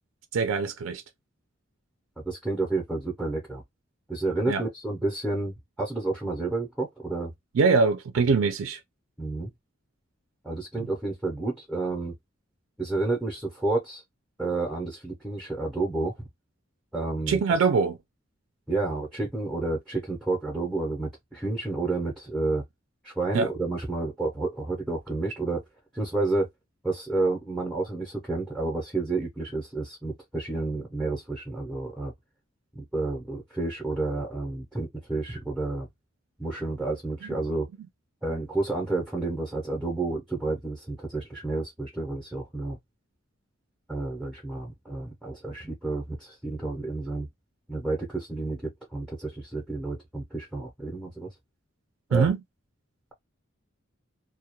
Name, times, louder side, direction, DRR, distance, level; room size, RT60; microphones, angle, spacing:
voice 1, 0.3-1.0 4.5-4.6 7.5-8.8 17.3-18.0 23.3-23.5 37.2-37.4 52.1-52.4, right 4 dB, 80° right, 0.4 m, -23 dB
voice 2, 2.2-3.6 4.1-7.3 9.2-9.5 10.4-12.1 12.8-14.0 14.4-16.3 16.9-17.4 18.7-22.6 23.0-25.6 25.9-26.5 26.8-32.1 32.7-35.9 36.4-37.7 38.2-42.8 43.9-47.3 47.7-51.3 52.1-52.3, right 2 dB, ahead, 0.6 m, -30 dB
2.3 x 2.1 x 2.8 m
head